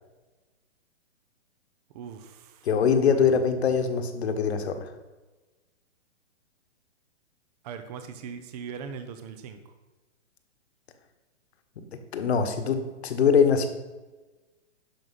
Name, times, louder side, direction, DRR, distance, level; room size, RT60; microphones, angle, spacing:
voice 1, 1.9-2.7 3.1-3.2 7.6-9.6, right 6 dB, 35° right, 9 dB, 0.9 m, -40 dB
voice 2, 2.6-4.9 11.8-13.7, left 6 dB, 60° left, 8 dB, 1.6 m, -23 dB
10.5 x 6.4 x 5.8 m, 1.2 s
hypercardioid pair, 145°, 36 cm